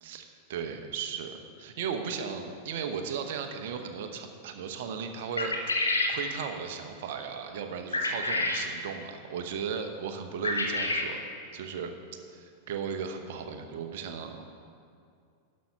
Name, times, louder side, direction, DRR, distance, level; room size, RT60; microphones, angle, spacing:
voice 1, 0.0-5.5 6.1-11.3 11.5-11.9 12.3-14.4, right 6 dB, 55° right, 6 dB, 0.9 m, -36 dB
sound 1, 5.4-6.2 7.9-8.7 10.4-11.1, left 2 dB, 80° left, 1.0 m, -28 dB
11.5 x 6.4 x 5.6 m, 2.4 s
figure-of-eight pair, 90°, 0 cm